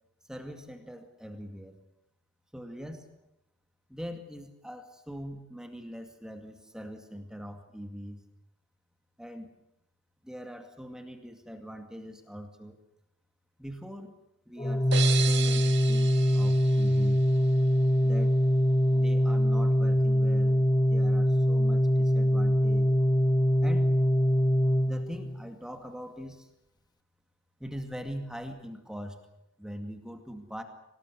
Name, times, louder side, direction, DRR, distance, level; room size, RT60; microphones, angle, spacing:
voice 1, 0.3-1.8 2.5-3.1 3.9-8.2 9.2-9.5 10.2-12.8 13.6-14.2 14.5-17.2 18.0-18.4 18.9-22.9 23.6-23.9 24.9-26.5 27.6-29.2 29.6-30.6, equal, 5° right, 5 dB, 2.2 m, -42 dB
Organ, 14.6-25.5, equal, 20° left, 1.0 m, -23 dB
sound 1, 14.9-17.7, right 8 dB, 60° right, 2.2 m, -35 dB
24.5 x 19.5 x 8.2 m, 0.83 s
head